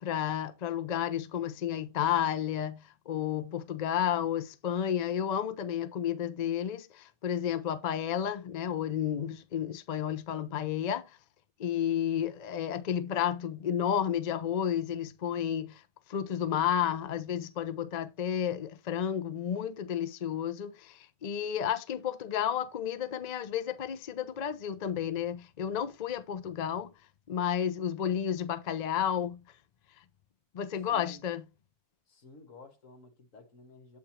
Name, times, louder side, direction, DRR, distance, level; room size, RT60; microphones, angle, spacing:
voice 1, 0.0-11.2 11.6-15.8 16.1-26.9 27.3-29.4 30.5-31.4, left 9 dB, 80° left, 0.3 m, -31 dB
voice 2, 30.9-31.2 32.1-34.0, left 2 dB, 60° left, 1.7 m, -53 dB
7.8 x 3.5 x 4.3 m
omnidirectional pair, 1.6 m